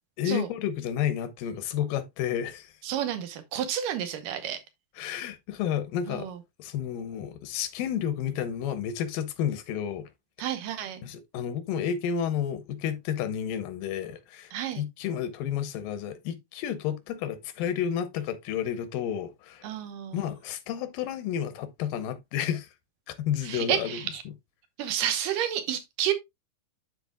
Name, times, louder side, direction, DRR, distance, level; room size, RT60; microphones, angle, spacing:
voice 1, 0.2-2.7 5.0-6.3 6.6-10.1 11.0-19.7 20.1-22.7 23.1-24.0, left 9 dB, 90° left, 2.6 m, -31 dB
voice 2, 2.8-4.6 6.1-6.4 10.4-11.0 14.5-14.8 19.6-20.3 23.4-24.2 24.8-26.1, right 10 dB, 80° right, 2.6 m, -30 dB
12.0 x 4.3 x 2.3 m
omnidirectional pair, 3.9 m